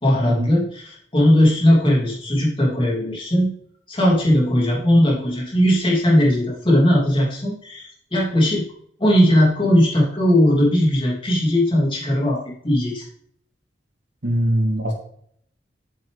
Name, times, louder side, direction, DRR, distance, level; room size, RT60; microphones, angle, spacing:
voice 1, 0.0-3.5 3.9-8.7 9.0-13.0, equal, 30° left, -3 dB, 2.8 m, -18 dB
voice 2, 14.2-14.9, equal, 85° right, 1 dB, 2.4 m, -21 dB
8.6 x 7.7 x 3.4 m, 0.65 s
head